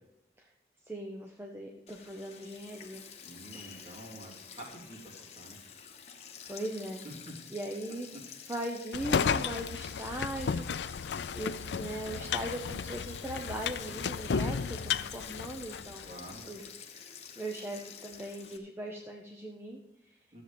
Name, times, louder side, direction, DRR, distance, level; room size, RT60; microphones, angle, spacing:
voice 1, 0.9-3.1 3.5-4.0 6.4-7.0 7.5-8.1 8.5-10.7 11.3-16.1 16.5-16.7 16.9-20.2, right 1 dB, 15° right, 1 dB, 0.7 m, -39 dB
Sink (filling or washing), 1.9-18.6, left 7 dB, 40° left, 1.1 m, -49 dB
voice 2, 3.2-5.6 7.0-7.1 12.0-12.2 16.0-16.4 20.3-20.4, right 1 dB, 35° right, -3 dB, 3.1 m, -48 dB
sound 1, 8.9-16.1, left 6 dB, 85° left, 0.4 m, -33 dB
13.5 x 7.6 x 5.2 m, 0.88 s
head